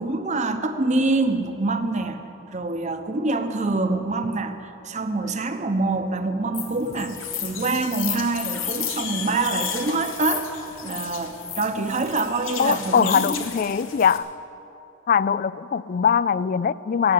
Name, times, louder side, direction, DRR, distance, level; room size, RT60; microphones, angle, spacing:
voice 1, 0.0-2.2 2.5-10.5 10.8-13.4, right 3 dB, 35° right, 0.9 m, -25 dB
sound 1, 6.5-14.2, left 8 dB, 70° left, 1.4 m, -33 dB
voice 2, 12.6-14.3 15.1-17.1, left 7 dB, 40° left, 0.3 m, -21 dB
17.0 x 8.1 x 9.3 m
head